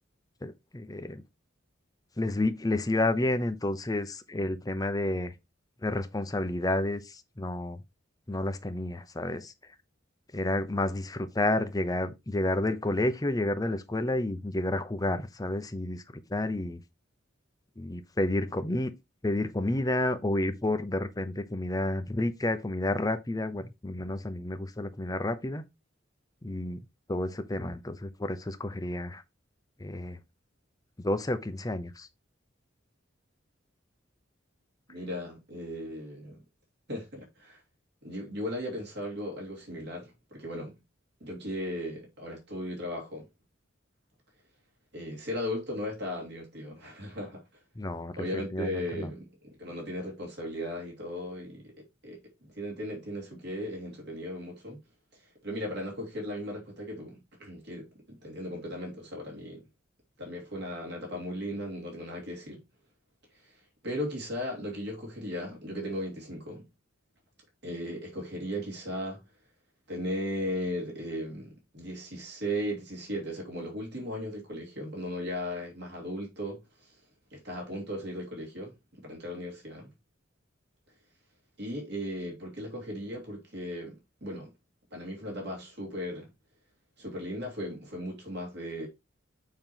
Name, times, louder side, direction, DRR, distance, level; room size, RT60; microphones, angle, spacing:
voice 1, 0.4-1.2 2.2-5.3 5.8-7.8 8.3-9.5 10.3-16.0 16.3-16.8 17.8-18.9 19.2-25.6 26.4-26.8 27.1-29.2 29.8-30.2 31.0-32.1 47.8-49.1, left 1 dB, 20° left, 0.7 m, -30 dB
voice 2, 34.9-36.4 36.9-37.6 38.0-40.7 41.2-43.3 44.9-47.4 48.2-54.8 55.1-59.6 60.2-62.6 63.3-63.6 63.8-66.7 67.6-69.2 69.9-76.9 77.3-79.9 81.6-84.5 84.9-86.3 87.0-88.9, equal, 60° right, 2.7 m, -37 dB
7.0 x 3.1 x 5.7 m
head